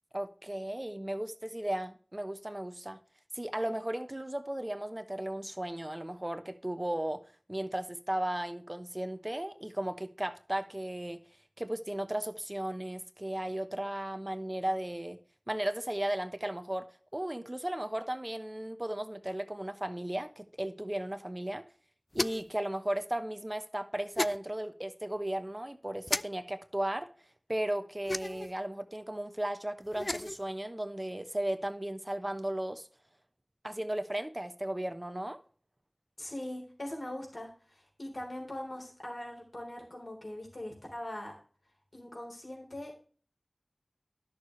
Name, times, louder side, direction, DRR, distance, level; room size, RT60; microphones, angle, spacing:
voice 1, 0.1-3.0 3.3-7.2 7.5-11.2 11.6-15.2 15.5-16.9 17.1-21.7 22.1-27.1 27.5-32.9 33.6-35.4, right 1 dB, 30° right, 1.0 m, -35 dB
sound 1, 22.1-22.6 24.2-24.4 26.1-26.2 28.1-28.5 29.9-30.4, left 1 dB, 50° left, 0.3 m, -33 dB
voice 2, 36.2-41.3 41.9-43.0, left 1 dB, 75° left, 3.3 m, -41 dB
11.5 x 6.6 x 3.2 m
wide cardioid pair, 40°, 0 cm